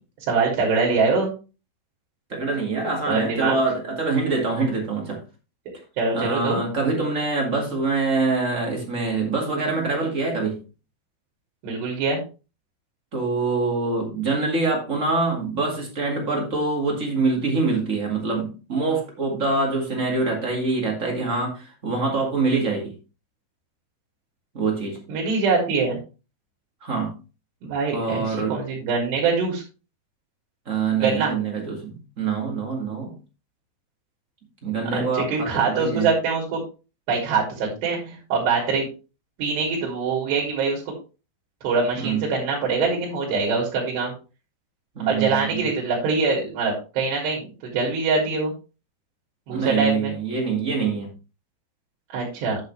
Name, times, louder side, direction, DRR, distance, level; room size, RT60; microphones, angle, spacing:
voice 1, 0.3-1.3 3.1-3.6 6.0-6.6 11.6-12.2 25.1-26.0 27.6-29.6 31.0-31.3 34.9-36.6 37.1-38.9 39.4-40.9 41.6-44.1 45.1-48.5 49.5-50.1 52.1-52.6, right 4 dB, 70° right, -2 dB, 4.8 m, -23 dB
voice 2, 2.3-5.2 6.1-10.6 13.1-22.9 24.5-25.0 26.8-27.1 27.9-28.6 30.6-33.1 34.6-36.1 37.6-37.7 42.0-42.3 44.9-45.7 49.5-51.1, right 3 dB, 35° right, 0 dB, 1.3 m, -25 dB
10.5 x 7.5 x 3.3 m, 0.32 s
omnidirectional pair, 5.1 m